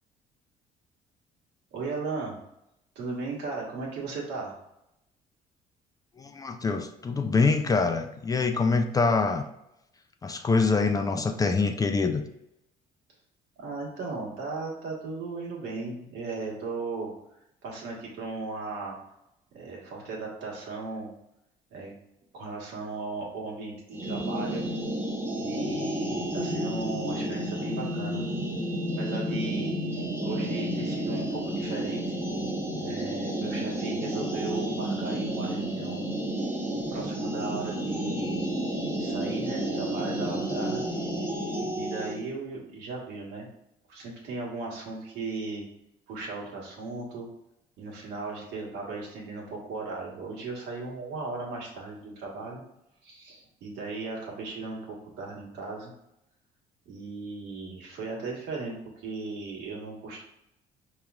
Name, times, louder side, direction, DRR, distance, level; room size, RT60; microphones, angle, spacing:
voice 1, 1.7-2.3 2.9-4.6 13.6-17.1 17.6-19.0 19.5-21.1 21.7-21.9 22.3-24.6 25.4-28.3 29.0-32.2 32.8-36.0 36.4-36.6 36.9-38.4 39.0-40.8 41.7-43.5 43.9-45.6 46.1-47.3 47.8-52.6 53.0-55.9 56.8-60.2, right 3 dB, 85° right, -3 dB, 1.4 m, -36 dB
voice 2, 6.2-9.5 10.2-12.2, left 4 dB, 20° left, 6 dB, 0.3 m, -25 dB
sound 1, 23.9-42.2, right 1 dB, 15° right, 0.8 m, -31 dB
5.1 x 3.0 x 2.3 m, 0.85 s
cardioid pair, 110°, 17 cm